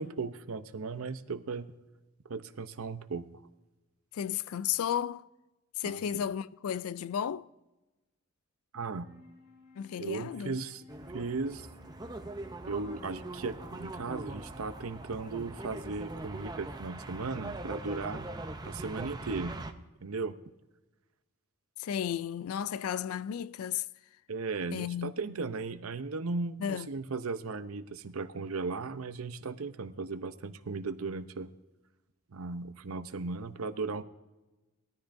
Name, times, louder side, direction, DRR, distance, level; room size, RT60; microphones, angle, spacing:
voice 1, 0.0-1.8 2.2-3.3 5.8-6.2 8.7-9.1 10.0-10.8 11.1-11.7 12.7-18.3 18.6-19.6 20.0-20.3 24.3-31.5 32.3-34.0, right 4 dB, 85° right, 0.7 m, -36 dB
voice 2, 4.1-5.3 5.8-7.5 9.8-10.6 21.8-23.9 24.7-25.1 26.6-26.9, left 9 dB, 85° left, 0.3 m, -33 dB
Wind instrument woodwind instrument, 8.8-18.3, left 2 dB, 45° left, 2.7 m, -57 dB
sound 1, 10.9-19.7, right 2 dB, 20° right, 0.6 m, -42 dB
20.5 x 13.5 x 2.6 m
head